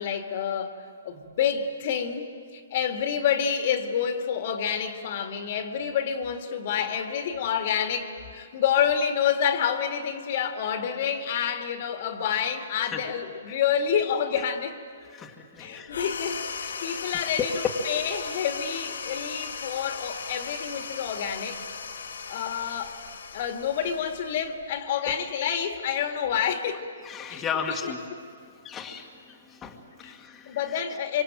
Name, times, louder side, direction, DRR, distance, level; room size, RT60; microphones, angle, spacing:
voice 1, 0.0-14.8 15.6-21.6 22.3-22.9 23.3-26.8 27.3-27.4 27.8-27.9 30.0-30.1 30.5-31.2, left 8 dB, 50° left, 6 dB, 2.2 m, -28 dB
voice 2, 15.1-16.0 17.4-17.5 27.0-28.0 28.6-30.8, left 7 dB, 15° left, 0 dB, 1.9 m, -35 dB
sound 1, 15.9-24.8, left 5 dB, 85° left, 2.8 m, -37 dB
26.0 x 25.5 x 9.1 m, 2.2 s
hypercardioid pair, 155°, 0 cm